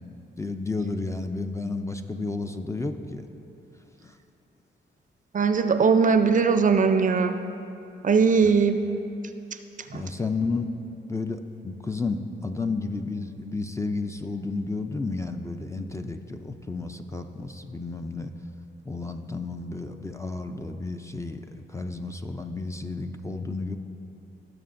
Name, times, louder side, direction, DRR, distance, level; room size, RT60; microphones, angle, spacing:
voice 1, 0.4-3.3 4.0-4.1 8.4-8.5 9.9-10.7 11.1-18.3 18.9-23.8, left 3 dB, 15° left, 6 dB, 0.4 m, -32 dB
voice 2, 5.3-7.4 8.0-8.8 9.9-10.0, right 5 dB, 40° right, 8 dB, 0.5 m, -20 dB
16.5 x 6.8 x 2.5 m, 2.8 s
cardioid pair, 95°, 19 cm